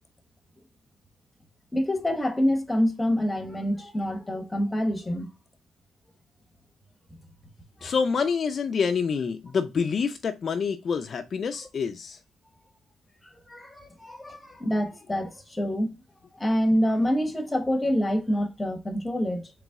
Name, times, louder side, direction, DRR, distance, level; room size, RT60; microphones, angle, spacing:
voice 1, 1.7-5.3 7.8-7.9 13.5-15.9 16.3-19.5, equal, 15° left, 0.9 m, -26 dB
voice 2, 7.8-12.2, left 5 dB, 45° left, 0.4 m, -27 dB
4.0 x 3.0 x 3.5 m
cardioid pair, 90°, 0 cm